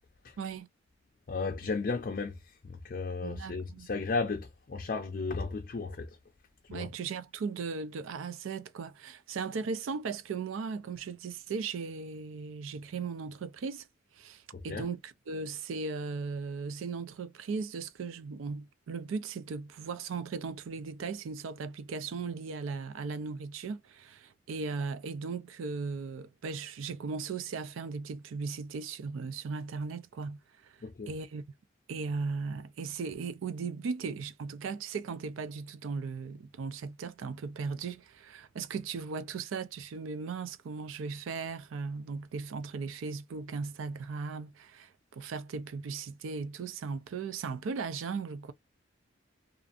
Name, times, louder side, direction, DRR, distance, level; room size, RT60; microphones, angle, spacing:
voice 1, 0.4-0.7 3.2-3.9 6.7-13.9 14.2-30.8 31.1-31.4 31.9-48.5, right 4 dB, 80° right, 0.4 m, -37 dB
voice 2, 1.3-6.2 6.7-6.9 14.5-14.9 30.8-31.1, left 4 dB, 45° left, 0.4 m, -34 dB
2.5 x 2.5 x 2.3 m
head